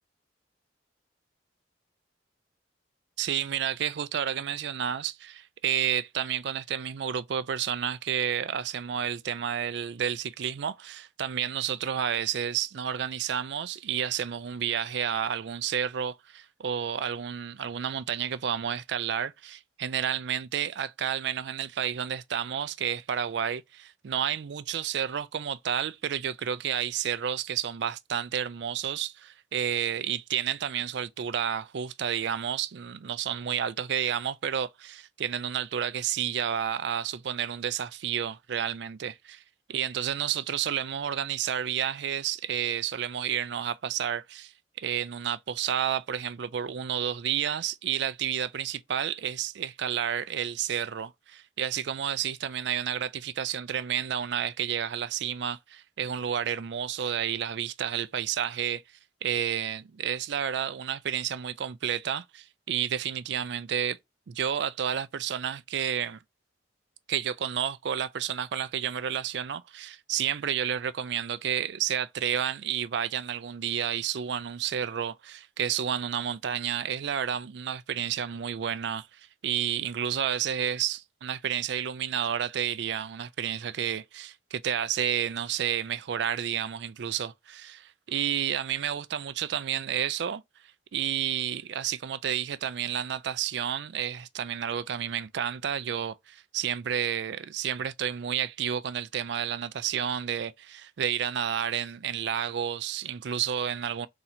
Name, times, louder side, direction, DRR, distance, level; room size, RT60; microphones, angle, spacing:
voice 1, 3.2-39.4 39.7-58.8 59.2-64.0 64.3-66.2 67.1-90.4 90.9-104.1, right 9 dB, 60° right, 0.4 m, -31 dB
4.0 x 2.8 x 4.2 m
head